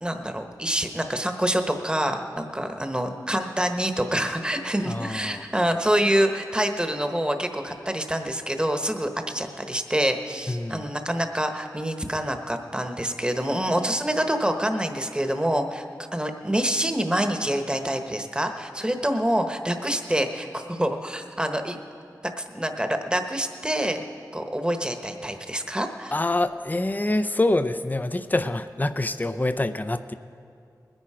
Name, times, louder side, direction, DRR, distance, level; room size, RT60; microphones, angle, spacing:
voice 1, 0.0-15.8 16.1-21.8 22.4-24.0 24.3-26.1, right 1 dB, 15° right, 6 dB, 1.2 m, -26 dB
voice 2, 4.8-5.5 10.5-10.9 26.1-30.1, left 2 dB, 25° left, 11 dB, 0.6 m, -26 dB
20.5 x 10.0 x 4.9 m, 2.5 s
wide cardioid pair, 45°, 7 cm